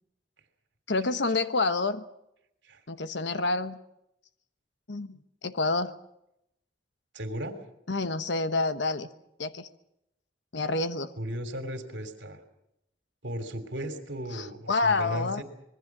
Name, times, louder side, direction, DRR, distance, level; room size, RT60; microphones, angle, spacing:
voice 1, 0.9-2.0 2.9-3.8 4.9-5.9 7.9-9.1 9.4-9.7 10.5-11.1 14.3-15.4, left 3 dB, 70° left, 11 dB, 1.3 m, -28 dB
voice 2, 7.1-7.5 11.2-12.4 13.2-15.4, equal, 70° right, 8 dB, 3.2 m, -36 dB
26.0 x 21.5 x 6.1 m, 0.81 s
head